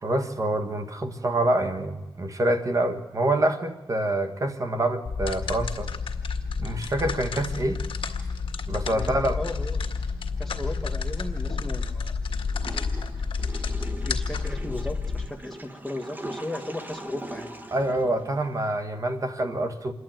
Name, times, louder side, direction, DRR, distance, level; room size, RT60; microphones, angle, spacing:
voice 1, 0.0-5.9 6.6-7.8 8.7-9.4 17.7-19.9, right 1 dB, 35° right, 7 dB, 1.5 m, -26 dB
sound 1, 5.0-15.3, left 4 dB, 70° left, 1.9 m, -30 dB
voice 2, 8.9-9.8 10.4-12.2 14.0-17.5, left 1 dB, 5° left, 4 dB, 1.5 m, -36 dB
Water / Toilet flush, 12.5-18.7, right 1 dB, 20° right, 1.4 m, -41 dB
26.5 x 11.0 x 9.1 m, 1.2 s
wide cardioid pair, 120°, 9 cm